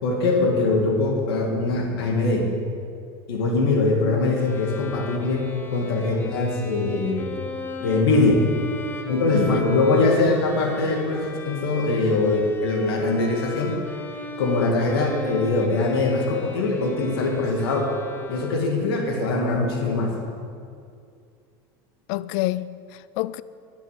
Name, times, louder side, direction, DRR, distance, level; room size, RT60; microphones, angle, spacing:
voice 1, 0.0-2.5 3.3-7.3 7.8-8.4 9.1-13.8 14.4-17.9 18.3-20.1, left 3 dB, 90° left, 2.2 m, -22 dB
Bowed string instrument, 4.3-18.9, left 3 dB, 15° left, 1.3 m, -38 dB
voice 2, 22.1-23.4, left 17 dB, 65° left, 0.5 m, -27 dB
10.0 x 9.6 x 7.8 m
supercardioid pair, 120°, 12 cm